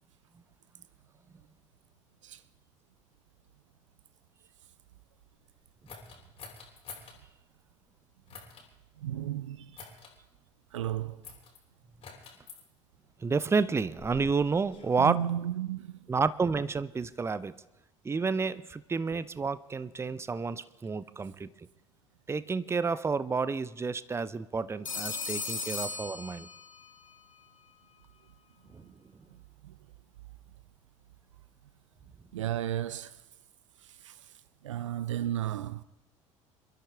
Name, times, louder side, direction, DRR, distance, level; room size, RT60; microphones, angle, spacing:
sound 1, 5.9-7.2 8.3-8.7 9.7-10.1 11.2-11.6 12.0-12.6 13.5-14.9, left 5 dB, 35° left, 3.3 m, -48 dB
voice 1, 9.0-9.9 10.7-11.2 15.0-16.1 25.5-25.6 28.8-28.9 29.6-29.8 32.3-33.2 33.8-34.3 34.6-35.8, right 11 dB, 70° right, 0.5 m, -34 dB
voice 2, 13.2-15.2 16.1-17.5 18.0-21.5 22.3-26.5 28.7-28.8, right 4 dB, 15° right, 0.7 m, -30 dB
Telephone, 24.9-26.9, left 3 dB, 85° left, 1.0 m, -36 dB
27.0 x 13.0 x 3.4 m
figure-of-eight pair, 60°, 16 cm